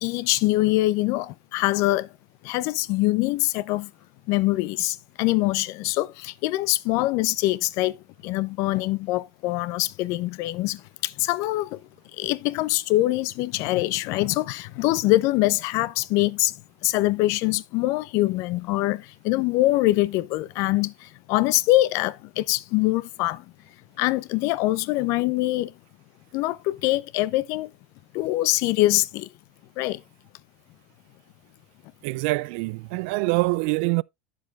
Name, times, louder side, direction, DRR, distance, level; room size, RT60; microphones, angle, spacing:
voice 1, 0.0-2.1 2.4-3.9 4.3-8.0 8.2-11.8 12.2-16.5 16.8-23.4 24.0-25.7 26.3-27.7 28.1-29.3 29.8-30.0, left 18 dB, 55° left, 0.6 m, -24 dB
voice 2, 32.0-34.0, right 24 dB, 60° right, 0.3 m, -25 dB
10.5 x 7.3 x 2.4 m
supercardioid pair, 130°, 6 cm